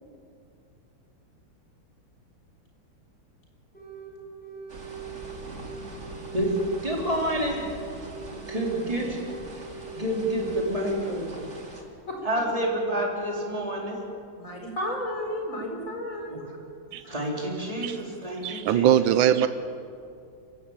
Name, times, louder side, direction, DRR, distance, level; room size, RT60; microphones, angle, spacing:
sound 1, 3.7-4.1 4.4-5.9 6.2-7.7 8.0-9.5 9.8-10.7, right 8 dB, 5° left, 5.7 m, -41 dB
sound 2, 4.7-11.8, right 2 dB, 35° right, 2.6 m, -43 dB
voice 1, 6.3-7.7 8.3-9.2 9.5-9.6 9.9-11.4 12.2-14.0 16.3-16.4 17.0-18.9, right 1 dB, 15° right, -1 dB, 3.9 m, -28 dB
voice 2, 14.4-16.4, equal, 40° left, 1 dB, 4.7 m, -33 dB
voice 3, 18.4-19.5, right 10 dB, 90° right, 12 dB, 1.5 m, -21 dB
24.5 x 15.0 x 8.8 m, 2.5 s
omnidirectional pair, 2.1 m